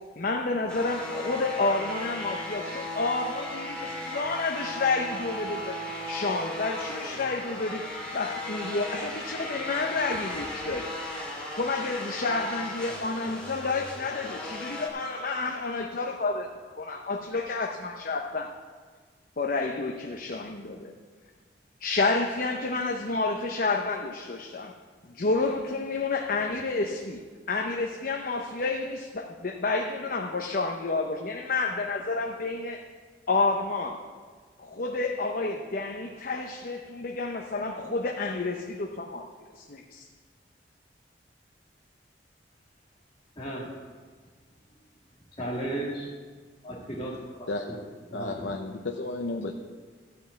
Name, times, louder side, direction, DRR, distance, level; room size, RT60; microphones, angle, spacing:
voice 1, 0.2-5.8 6.1-7.8 8.1-11.0 11.5-18.5 19.4-20.9 21.8-24.7 25.1-27.2 27.5-32.8 33.3-34.0 34.6-39.3 39.5-40.1, left 3 dB, 50° left, 2 dB, 0.8 m, -30 dB
sound 1, 0.7-14.9, left 1 dB, 5° left, 2.2 m, -36 dB
voice 2, 43.4-43.7 45.4-46.1 46.6-47.1 47.4-47.8 48.1-48.5, right 1 dB, 30° left, -7 dB, 2.1 m, -34 dB
voice 3, 48.1-49.5, left 2 dB, 85° left, 2 dB, 0.7 m, -33 dB
14.0 x 5.5 x 7.9 m, 1.5 s
head